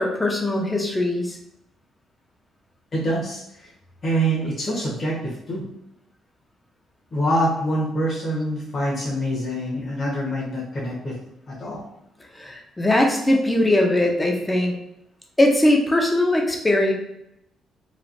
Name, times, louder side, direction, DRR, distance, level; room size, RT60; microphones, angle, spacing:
voice 1, 0.0-1.4 12.3-14.7 15.4-16.9, left 1 dB, 15° left, 1 dB, 0.6 m, -20 dB
voice 2, 2.9-3.7 4.0-5.6 7.1-11.2 11.5-11.8, right 1 dB, 40° left, -8 dB, 1.1 m, -25 dB
3.2 x 2.4 x 2.6 m, 0.82 s
cardioid pair, 90°, 0 cm